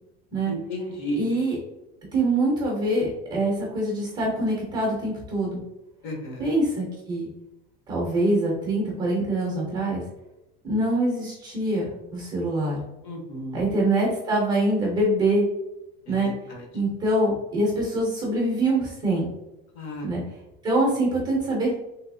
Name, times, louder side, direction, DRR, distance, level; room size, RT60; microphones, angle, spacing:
voice 1, 0.5-1.3 6.0-6.5 13.0-13.6 16.1-16.7 19.7-20.1, equal, 55° left, 1 dB, 0.9 m, -33 dB
voice 2, 1.2-1.6 2.1-5.6 6.4-7.3 7.9-10.0 10.6-12.8 13.5-15.5 16.1-16.3 16.7-19.3 20.0-20.2 20.6-21.7, right 1 dB, 15° right, -2 dB, 0.5 m, -24 dB
3.4 x 2.7 x 2.5 m, 0.94 s
cardioid pair, 180°, 30 cm